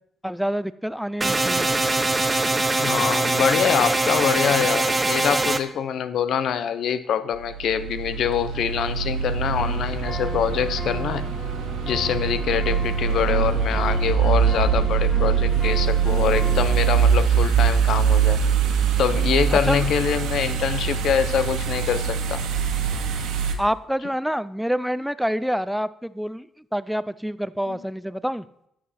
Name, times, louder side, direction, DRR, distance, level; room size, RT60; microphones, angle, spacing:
voice 1, 0.2-1.7 19.5-19.9 23.6-28.4, equal, ahead, 15 dB, 0.5 m, -27 dB
sound 1, 1.2-5.6, right 2 dB, 20° right, 0.8 m, -22 dB
voice 2, 2.8-11.3 11.8-18.4 19.0-22.4 27.7-27.8, left 8 dB, 70° left, 13 dB, 0.7 m, -25 dB
sound 2, 7.4-23.5, right 7 dB, 90° right, 1.4 m, -23 dB
sound 3, 9.6-16.9, left 3 dB, 45° left, 3.3 m, -36 dB
11.0 x 7.5 x 4.3 m, 0.76 s
cardioid pair, 90°, 0 cm